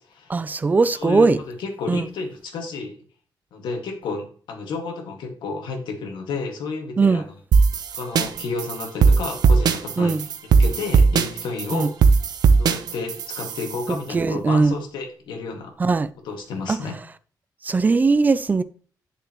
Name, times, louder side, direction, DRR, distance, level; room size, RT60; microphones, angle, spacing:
voice 1, 0.3-1.4 1.9-2.0 7.0-7.2 10.0-10.2 11.7-11.9 14.1-14.8 15.8-16.1 16.7-16.8 17.6-18.6, right 4 dB, 20° right, 0.5 m, -19 dB
voice 2, 0.9-3.0 3.5-7.2 8.0-10.3 10.6-11.9 12.6-15.7 16.2-17.0, left 4 dB, 90° left, 2.1 m, -31 dB
sound 1, 7.5-13.9, right 5 dB, 60° right, 0.8 m, -18 dB
10.5 x 6.8 x 3.1 m
wide cardioid pair, 160°, 8 cm